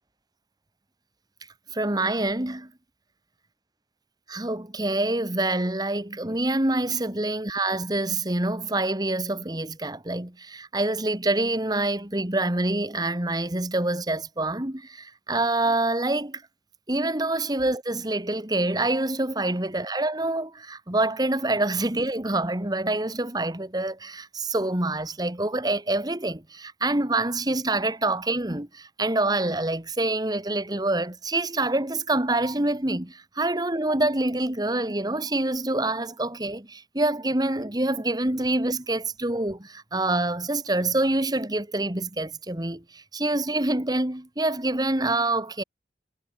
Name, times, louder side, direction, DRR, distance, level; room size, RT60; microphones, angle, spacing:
voice 1, 1.7-2.7 4.3-16.4 16.9-45.6, right 2 dB, 25° right, 1.9 m, -26 dB
head